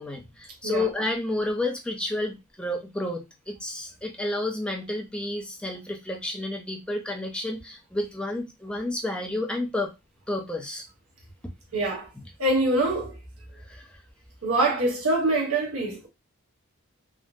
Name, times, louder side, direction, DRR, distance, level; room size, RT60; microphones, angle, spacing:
voice 1, 0.0-9.9 10.3-10.9 13.7-14.0, left 1 dB, 5° left, 0.4 m, -30 dB
voice 2, 11.7-12.1 12.4-13.2 14.4-16.1, right 2 dB, 70° right, 1.2 m, -24 dB
3.6 x 2.0 x 2.5 m
head